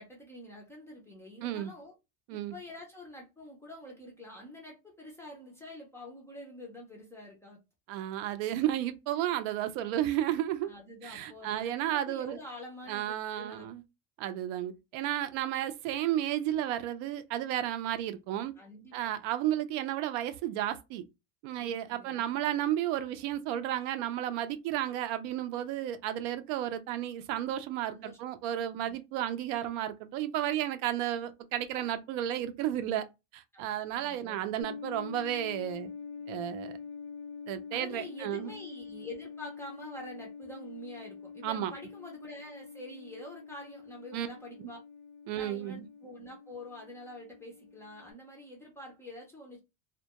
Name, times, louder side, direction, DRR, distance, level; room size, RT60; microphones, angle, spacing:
voice 1, 0.0-1.9 2.3-7.6 10.6-13.7 18.6-19.1 21.5-22.2 27.9-28.2 28.9-29.0 33.5-33.7 34.0-34.6 37.7-44.8 45.3-49.6, left 1 dB, 10° left, 0.3 m, -47 dB
voice 2, 1.4-1.7 2.3-2.6 7.9-10.7 11.0-12.4 12.9-13.8 14.2-18.5 18.9-21.0 21.4-33.1 33.3-35.9 36.3-36.8 37.5-38.5 41.4-41.7 44.1-44.3 44.6-44.7 45.3-45.9, right 12 dB, 85° right, 0.5 m, -33 dB
sound 1, 34.6-48.1, left 5 dB, 85° left, 0.6 m, -45 dB
2.2 x 2.1 x 2.8 m
cardioid pair, 155°, 37 cm